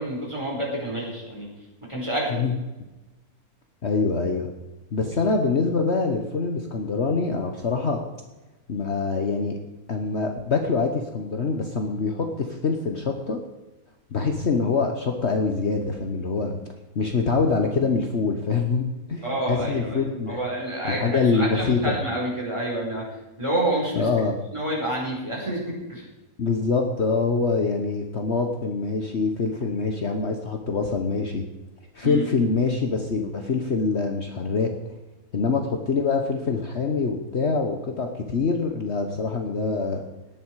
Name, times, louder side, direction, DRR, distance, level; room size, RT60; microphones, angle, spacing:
voice 1, 0.0-1.5 1.9-2.4 19.2-23.0 23.4-24.1 24.5-25.6 25.9-26.0 32.0-32.3, right 1 dB, 20° right, -3 dB, 5.0 m, -28 dB
voice 2, 3.8-4.5 4.9-8.0 8.7-9.6 9.9-13.4 14.1-16.5 16.9-18.8 19.1-20.4 20.8-21.9 23.9-24.3 26.4-31.4 31.9-34.7 35.3-40.0, left 4 dB, 50° left, 4 dB, 1.4 m, -24 dB
18.5 x 11.0 x 4.8 m, 1.1 s
omnidirectional pair, 1.6 m